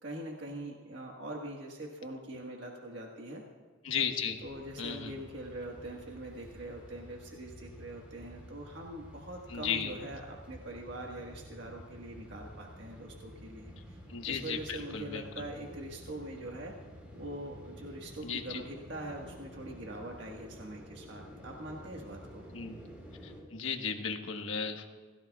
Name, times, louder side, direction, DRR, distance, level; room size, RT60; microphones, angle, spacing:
voice 1, 0.0-3.4 4.4-14.0 14.2-16.7 17.1-22.4, right 1 dB, 65° right, -1 dB, 1.6 m, -43 dB
voice 2, 3.8-4.4 4.8-5.1 9.5-9.9 14.1-15.2 18.2-18.6 22.5-22.8 23.2-24.9, left 6 dB, 85° left, 4 dB, 1.3 m, -35 dB
sound 1, 4.4-23.4, equal, 10° right, 4.0 m, -51 dB
27.5 x 16.5 x 2.4 m, 1.5 s
head